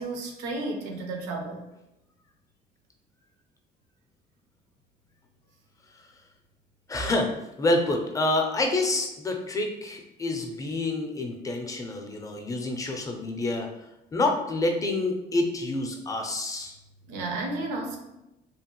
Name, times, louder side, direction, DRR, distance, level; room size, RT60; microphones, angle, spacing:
voice 1, 0.0-1.6 17.1-18.0, right 2 dB, 90° right, 3 dB, 0.6 m, -32 dB
voice 2, 6.9-7.3 7.6-13.7 14.1-16.7, left 2 dB, 20° left, 3 dB, 0.5 m, -27 dB
2.8 x 2.2 x 3.0 m, 0.91 s
cardioid pair, 110°, 17 cm